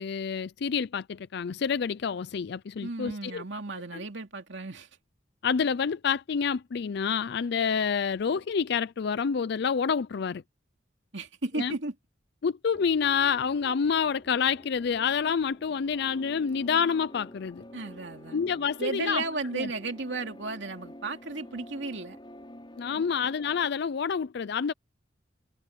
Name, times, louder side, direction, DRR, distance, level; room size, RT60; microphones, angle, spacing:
voice 1, 0.0-3.4 3.9-4.0 5.4-10.4 11.6-11.8 12.4-17.6 18.3-19.2 19.5-19.7 22.8-24.7, left 6 dB, 60° left, 0.4 m, -28 dB
voice 2, 2.8-4.9 11.1-11.9 17.7-18.4 18.8-22.2 22.9-23.1, right 3 dB, 70° right, 2.8 m, -34 dB
sound 1, 12.7-23.7, left 1 dB, 25° left, 6.4 m, -48 dB
head